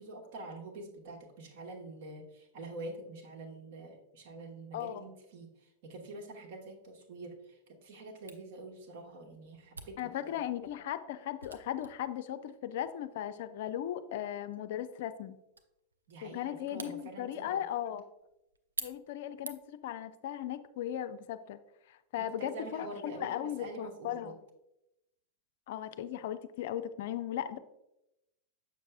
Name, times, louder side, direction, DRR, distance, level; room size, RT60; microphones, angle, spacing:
voice 1, 0.0-10.4 16.1-17.6 22.2-24.3, right 2 dB, 50° right, 2 dB, 1.2 m, -46 dB
voice 2, 4.7-5.0 10.0-15.4 16.2-18.0 18.8-21.6 21.9-24.3 25.7-27.6, left 10 dB, 55° left, 11 dB, 0.4 m, -37 dB
Camera, 8.3-19.9, right 4 dB, 75° right, 0.5 m, -50 dB
6.9 x 6.4 x 2.3 m, 0.86 s
figure-of-eight pair, 90°, 0 cm